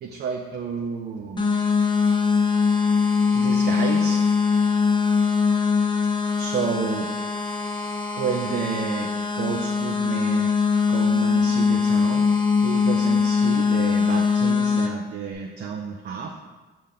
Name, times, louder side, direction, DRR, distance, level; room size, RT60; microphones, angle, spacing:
voice 1, 0.0-1.4 3.3-4.2 6.4-7.1 8.2-10.5 10.9-12.2 12.6-16.3, right 6 dB, 55° right, 2 dB, 0.6 m, -30 dB
sound 1, 1.4-14.9, left 5 dB, 25° left, 0.8 m, -22 dB
5.7 x 5.3 x 3.5 m, 1.2 s
cardioid pair, 90°, 20 cm